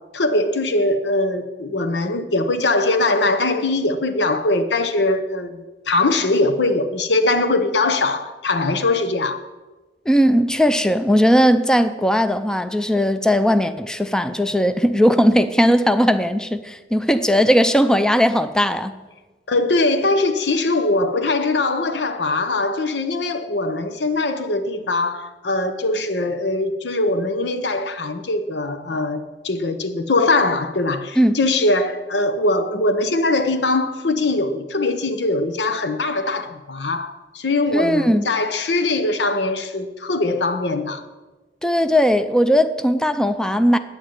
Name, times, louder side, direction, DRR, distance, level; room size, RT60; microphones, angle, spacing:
voice 1, 0.1-9.4 19.5-41.0, left 2 dB, 75° left, 0.9 m, -21 dB
voice 2, 10.1-18.9 31.2-31.4 37.7-38.2 41.6-43.8, equal, 5° left, 0.5 m, -18 dB
10.5 x 9.0 x 8.8 m
head